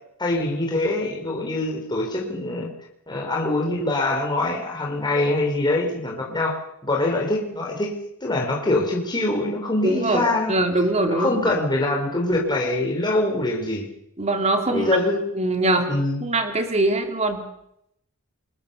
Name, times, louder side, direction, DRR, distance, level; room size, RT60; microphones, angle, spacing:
voice 1, 0.2-2.7 3.1-7.9 8.2-10.6 11.1-13.9 14.7-15.2 15.9-16.2, left 2 dB, 20° left, -1 dB, 4.2 m, -24 dB
voice 2, 9.8-11.5 14.2-14.9 15.4-15.9 16.2-17.4, right 2 dB, 30° right, 5 dB, 3.8 m, -22 dB
29.0 x 22.0 x 7.0 m, 0.77 s
head